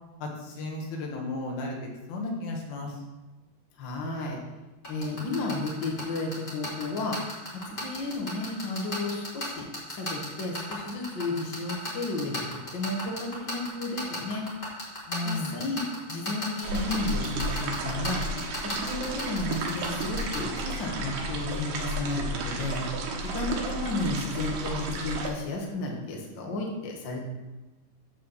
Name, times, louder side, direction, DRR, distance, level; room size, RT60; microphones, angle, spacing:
voice 1, 0.2-1.8 2.1-3.0 15.1-15.5, left 2 dB, 75° left, 0 dB, 3.3 m, -34 dB
voice 2, 3.8-4.4 4.9-7.2 7.5-14.5 15.2-15.8 16.1-18.3 18.6-22.9 23.2-27.2, left 2 dB, 55° left, -1 dB, 1.3 m, -33 dB
sound 1, 4.8-20.4, left 1 dB, 15° left, 2.2 m, -34 dB
sound 2, 16.6-25.3, right 2 dB, 85° right, 3.2 m, -33 dB
8.5 x 4.6 x 7.1 m, 1.1 s
omnidirectional pair, 4.4 m